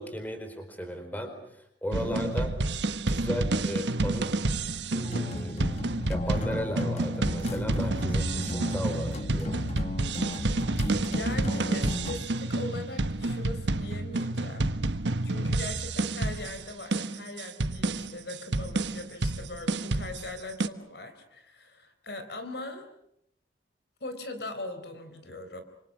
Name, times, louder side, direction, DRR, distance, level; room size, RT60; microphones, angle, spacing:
voice 1, 0.0-2.5 3.1-4.3 4.9-5.6 6.1-9.6, equal, 10° left, 6 dB, 4.5 m, -35 dB
voice 2, 1.9-2.3 8.9-9.1 11.1-14.7 15.2-22.9 24.0-25.6, left 2 dB, 60° left, 9 dB, 4.2 m, -40 dB
sound 1, 1.9-20.7, right 2 dB, 75° right, 1.3 m, -29 dB
sound 2, 5.0-12.3, left 1 dB, 40° left, 1.0 m, -35 dB
28.5 x 26.5 x 6.3 m, 0.75 s
head